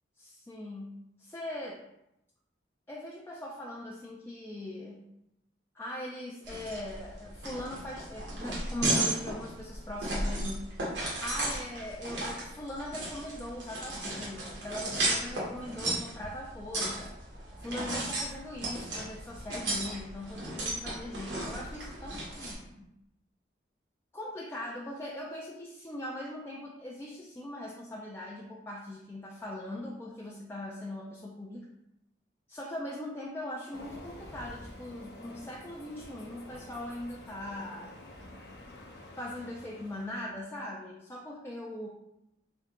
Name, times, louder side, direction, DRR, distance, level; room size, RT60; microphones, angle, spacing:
voice 1, 0.2-1.8 2.9-5.0 5.7-10.6 11.2-17.1 17.6-22.9 24.1-31.6 32.5-37.9 39.2-41.9, left 1 dB, 15° left, -3 dB, 0.3 m, -40 dB
sound 1, 6.4-22.5, right 2 dB, 85° right, 1.2 m, -35 dB
Train, 33.7-40.4, left 1 dB, 65° left, 0.6 m, -49 dB
3.5 x 2.7 x 3.6 m, 0.85 s
head